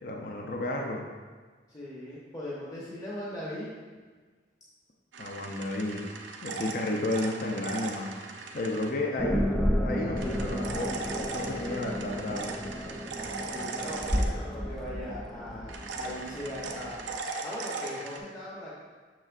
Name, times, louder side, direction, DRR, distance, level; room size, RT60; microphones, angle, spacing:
voice 1, 0.0-1.0 5.2-6.0 6.4-8.2 8.5-9.5 9.8-12.5, left 2 dB, 55° left, 0 dB, 0.6 m, -32 dB
voice 2, 1.7-3.7 13.5-17.0 17.4-18.7, left 1 dB, 20° left, -8 dB, 0.9 m, -39 dB
sound 1, 5.1-8.9 10.2-14.8 15.7-18.2, right 3 dB, 85° right, 0.6 m, -39 dB
sound 2, 9.2-17.2, equal, 5° left, 0.3 m, -32 dB
6.5 x 6.1 x 2.4 m, 1.5 s
head